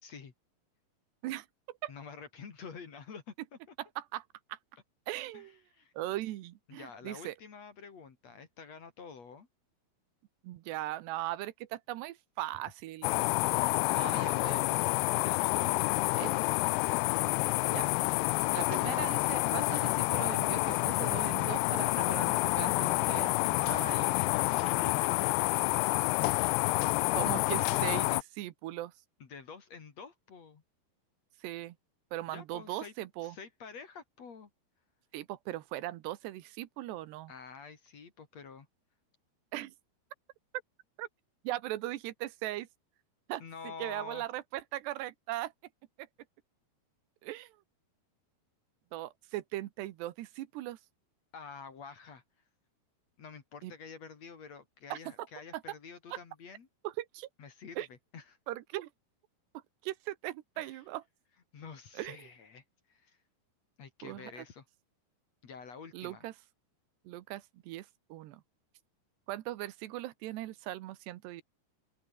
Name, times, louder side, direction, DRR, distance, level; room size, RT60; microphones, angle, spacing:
voice 1, 0.0-0.3 1.9-3.3 3.7-3.8 5.3-5.9 6.7-9.5 13.8-14.5 15.2-16.6 24.1-25.4 29.2-30.6 32.3-32.9 33.2-34.5 37.3-38.7 43.4-44.3 51.3-52.2 53.2-56.7 57.4-58.2 60.6-60.8 61.5-63.2 63.8-64.7 65.4-66.2, left 5 dB, 45° left, 3.4 m, -48 dB
voice 2, 1.2-1.9 3.8-4.6 5.1-5.6 5.9-7.3 10.4-13.2 13.9-14.8 16.2-16.3 17.6-18.0 18.5-24.2 27.1-28.9 31.4-31.8 32.1-33.4 35.1-37.3 39.5-39.7 41.0-41.1 41.4-42.7 43.3-43.4 43.8-45.5 46.0-46.1 47.2-47.6 48.9-50.8 53.6-53.7 54.9-55.3 55.5-55.6 56.1-56.2 56.8-57.3 57.8-57.9 58.5-58.9 59.5-61.0 61.9-62.2 64.0-64.4 65.9-66.3 67.0-68.4 69.3-71.4, right 15 dB, 85° right, 3.3 m, -39 dB
sound 1, 13.0-28.2, left 23 dB, 85° left, 2.6 m, -28 dB
open air
omnidirectional pair, 4.7 m